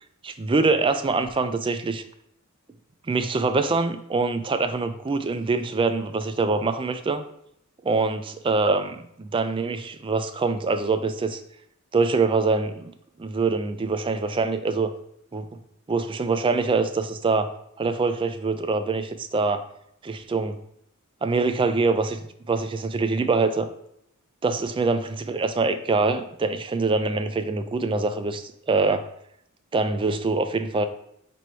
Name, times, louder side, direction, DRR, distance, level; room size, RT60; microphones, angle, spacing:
voice 1, 0.2-2.0 3.1-7.2 7.8-11.4 11.9-12.9 13.2-14.9 15.3-15.5 15.9-17.5 17.8-19.6 20.0-20.6 21.2-23.7 24.4-29.1 29.7-30.9, right 3 dB, 25° right, 9 dB, 0.3 m, -24 dB
4.6 x 2.6 x 4.3 m, 0.73 s
head